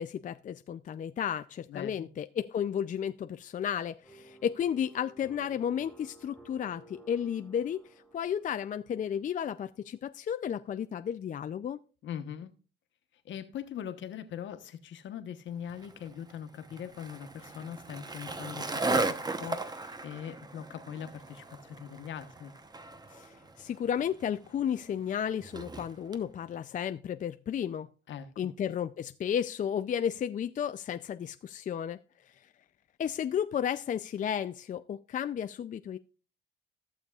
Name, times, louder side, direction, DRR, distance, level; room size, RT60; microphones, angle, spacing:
voice 1, 0.0-7.8 8.1-11.8 23.1-27.9 28.4-32.0 33.0-36.0, left 8 dB, 40° left, 0.4 m, -33 dB
voice 2, 1.7-2.1 12.0-12.5 13.2-22.5 28.1-28.5, left 9 dB, 70° left, 1.1 m, -41 dB
sound 1, 4.0-9.2, right 1 dB, 5° right, 2.8 m, -55 dB
Skateboard, 15.7-26.2, right 3 dB, 20° right, 0.9 m, -37 dB
14.5 x 7.0 x 2.4 m
cardioid pair, 90°, 20 cm